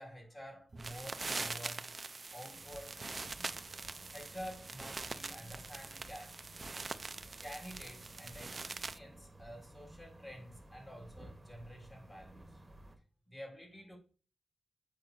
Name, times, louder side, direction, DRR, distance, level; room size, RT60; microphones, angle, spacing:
voice 1, 0.0-1.9 2.3-3.5 4.1-6.4 7.4-12.6 13.3-14.0, equal, 25° left, 1.9 m, -50 dB
sound 1, 0.7-9.0, right 3 dB, 30° right, 0.3 m, -43 dB
sound 2, 2.5-13.0, right 1 dB, 15° right, 1.0 m, -56 dB
7.8 x 5.1 x 2.6 m
wide cardioid pair, 175°, 0 cm